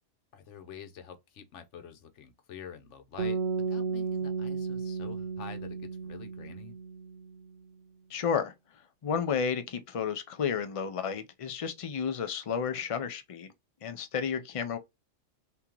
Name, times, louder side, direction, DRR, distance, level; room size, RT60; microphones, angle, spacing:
voice 1, 0.3-3.4 3.7-6.7, left 7 dB, 70° left, 1.1 m, -47 dB
sound 1, 3.2-7.4, right 4 dB, 60° right, 0.8 m, -34 dB
voice 2, 8.1-8.5 9.0-13.5 13.8-14.8, left 6 dB, 55° left, 0.3 m, -32 dB
3.7 x 2.8 x 2.9 m
omnidirectional pair, 1.3 m